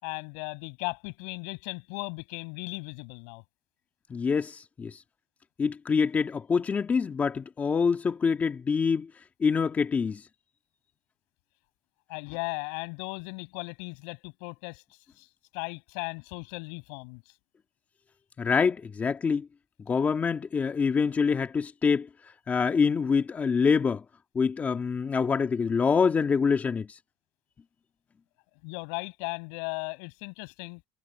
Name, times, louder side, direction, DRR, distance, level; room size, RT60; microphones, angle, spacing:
voice 1, 0.0-3.4 12.1-14.8 15.2-15.3 15.5-17.2 28.6-30.8, left 36 dB, 85° left, 7.3 m, -37 dB
voice 2, 4.1-5.0 5.6-9.1 9.4-10.2 18.4-19.5 19.9-22.1 22.5-24.0 24.4-26.9, left 5 dB, 25° left, 1.9 m, -25 dB
cardioid pair, 130°, 7 cm